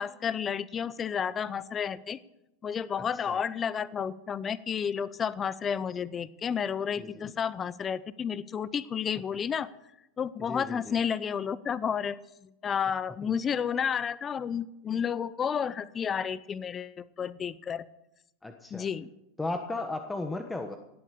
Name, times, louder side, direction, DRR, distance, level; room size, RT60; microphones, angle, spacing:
voice 1, 0.0-2.2 2.6-9.7 10.2-12.2 12.6-17.8 18.7-19.1, left 7 dB, 30° left, 18 dB, 0.7 m, -31 dB
voice 2, 3.0-3.4 6.9-7.3 10.4-11.0 13.2-13.3 18.4-18.9 19.4-20.8, left 2 dB, 10° left, 6 dB, 1.3 m, -36 dB
18.0 x 8.5 x 6.7 m, 0.85 s
hypercardioid pair, 100°, 0 cm